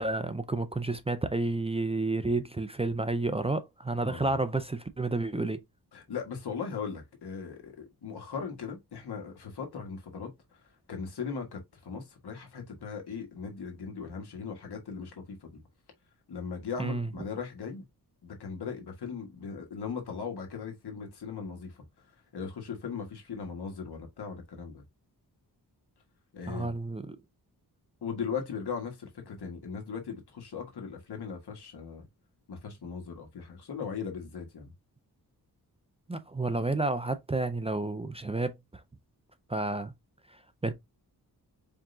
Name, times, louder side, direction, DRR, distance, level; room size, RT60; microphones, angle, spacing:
voice 1, 0.0-5.6 16.8-17.1 26.5-27.2 36.1-38.6 39.5-39.9 40.3-40.7, right 2 dB, 15° right, 0.4 m, -30 dB
voice 2, 5.9-10.3 10.9-15.6 16.3-17.8 18.2-21.7 22.3-24.8 26.3-26.7 28.0-32.1 32.5-34.7, left 6 dB, 85° left, 1.5 m, -38 dB
4.6 x 3.7 x 2.6 m
wide cardioid pair, 155°, 38 cm